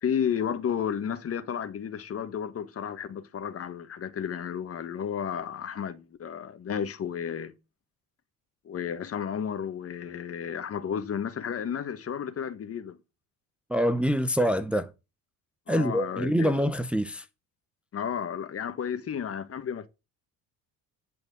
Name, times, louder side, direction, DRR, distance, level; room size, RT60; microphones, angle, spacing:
voice 1, 0.0-7.5 8.6-13.0 15.7-16.6 17.9-19.9, left 8 dB, 40° left, 1.5 m, -32 dB
voice 2, 13.7-14.9 15.7-17.2, equal, 5° right, 0.7 m, -25 dB
11.0 x 4.7 x 7.8 m
cardioid pair, 115°, 34 cm